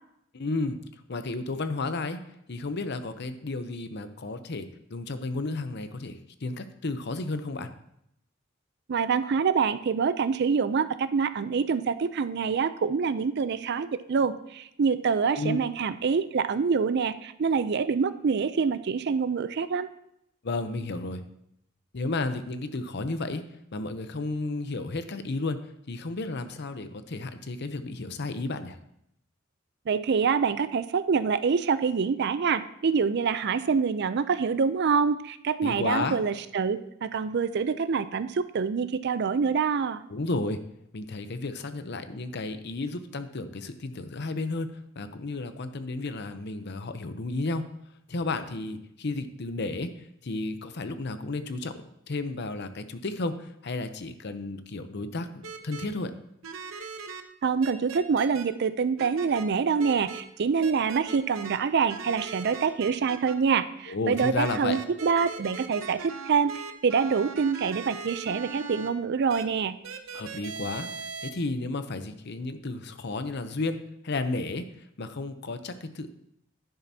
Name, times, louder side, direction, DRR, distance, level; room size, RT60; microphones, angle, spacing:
voice 1, 0.3-0.8 1.1-2.2 2.5-7.7 15.4-15.6 20.4-21.2 21.9-23.4 23.7-25.6 25.9-28.8 35.6-36.2 40.1-40.6 40.9-47.6 48.1-55.3 55.6-56.1 63.9-64.8 70.1-70.9 71.2-74.7 75.0-76.1, left 2 dB, 55° left, 10 dB, 0.7 m, -32 dB
voice 2, 8.9-19.9 29.9-40.0 57.4-69.8, right 5 dB, 55° right, 13 dB, 0.4 m, -26 dB
sound 1, 55.4-55.8 56.4-57.2 57.6-58.4 59.0-59.4 59.8-60.2 60.6-61.6 61.9-63.3 64.2-68.9 69.3-69.4 69.8-71.3, right 5 dB, 85° right, 0.8 m, -39 dB
10.5 x 10.5 x 2.8 m, 0.77 s
head